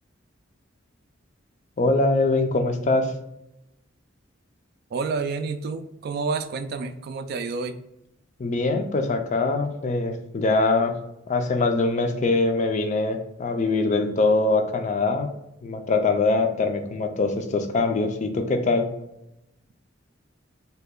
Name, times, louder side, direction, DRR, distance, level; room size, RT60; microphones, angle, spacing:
voice 1, 1.8-3.1 8.4-10.9 11.3-15.3 15.6-18.9, left 3 dB, 40° left, 6 dB, 0.4 m, -23 dB
voice 2, 4.9-7.8, right 4 dB, 55° right, 8 dB, 0.3 m, -29 dB
2.8 x 2.3 x 3.6 m, 0.83 s
head